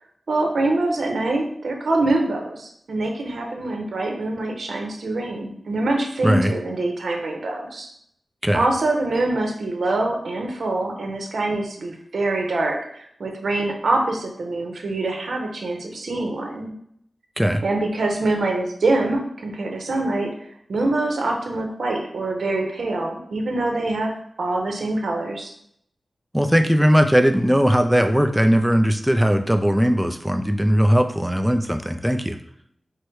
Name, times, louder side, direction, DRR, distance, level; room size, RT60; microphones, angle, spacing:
voice 1, 0.3-7.9 8.5-16.7 17.6-24.1 24.4-25.5, right 2 dB, 80° right, 2 dB, 0.8 m, -24 dB
voice 2, 26.3-32.4, equal, 5° right, 6 dB, 0.4 m, -19 dB
4.8 x 2.1 x 4.5 m, 0.70 s
wide cardioid pair, 115°, 0 cm